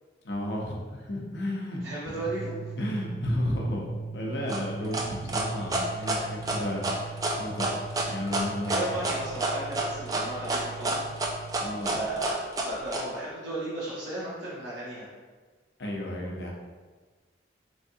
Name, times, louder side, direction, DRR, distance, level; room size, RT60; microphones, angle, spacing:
voice 1, 0.2-2.2 2.8-3.8 4.1-7.8 8.1-9.1 11.6-12.0 15.8-16.5, left 1 dB, 65° left, -2 dB, 0.6 m, -33 dB
voice 2, 1.8-2.5 8.7-11.0 11.9-15.1, right 1 dB, 85° right, -8 dB, 0.8 m, -35 dB
sound 1, 2.2-11.5, right 5 dB, 5° left, 0.8 m, -40 dB
sound 2, 4.5-13.0, right 2 dB, 20° right, 0.3 m, -29 dB
3.5 x 3.1 x 2.7 m, 1.4 s
head